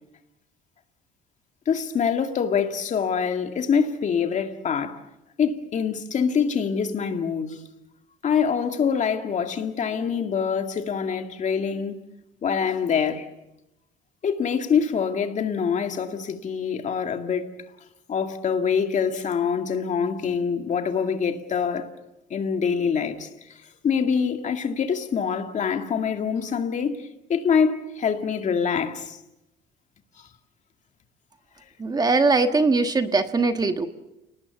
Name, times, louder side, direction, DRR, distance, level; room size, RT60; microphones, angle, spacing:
voice 1, 1.7-5.0 5.4-7.6 8.2-12.0 12.4-13.3 14.2-17.6 18.1-21.9 22.3-23.3 23.8-29.2, left 6 dB, 45° left, 2.2 m, -25 dB
voice 2, 31.8-33.9, right 3 dB, 25° right, 1.5 m, -21 dB
29.5 x 19.0 x 7.1 m
cardioid pair, 110°, 17 cm